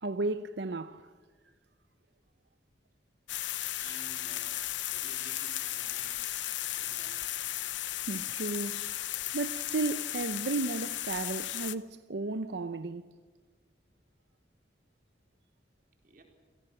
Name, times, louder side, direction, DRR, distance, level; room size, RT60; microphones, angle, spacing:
voice 1, 0.0-1.1 7.9-9.0 9.3-13.1, right 3 dB, 70° right, 0.7 m, -34 dB
sound 1, 3.3-11.8, left 14 dB, 85° left, 0.8 m, -35 dB
voice 2, 3.7-4.6 4.9-6.3 6.8-7.3 16.0-16.2, right 2 dB, 50° right, 4.3 m, -53 dB
28.0 x 17.5 x 7.8 m
head